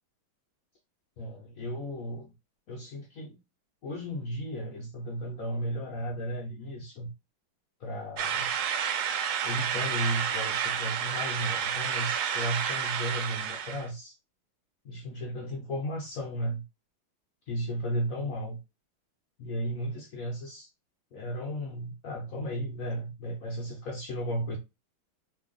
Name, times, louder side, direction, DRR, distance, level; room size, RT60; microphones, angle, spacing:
voice 1, 1.2-2.3 2.7-3.4 3.8-7.1 7.8-8.5 9.4-14.1 14.8-16.6 17.5-18.6 19.4-20.7 21.1-24.6, equal, 70° left, 0.8 m, -34 dB
sound 1, 8.2-13.9, right 8 dB, 80° right, 1.4 m, -30 dB
3.4 x 2.3 x 3.7 m
omnidirectional pair, 2.3 m